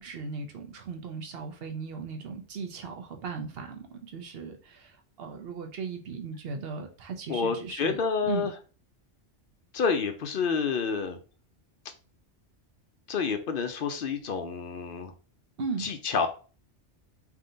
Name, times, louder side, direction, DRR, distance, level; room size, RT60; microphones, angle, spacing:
voice 1, 0.0-8.5 15.6-15.9, right 5 dB, 60° right, 5 dB, 0.9 m, -37 dB
voice 2, 7.3-8.5 9.7-11.2 13.1-15.1 15.8-16.3, left 5 dB, 55° left, 7 dB, 0.7 m, -28 dB
3.6 x 2.8 x 3.8 m, 0.36 s
omnidirectional pair, 1.2 m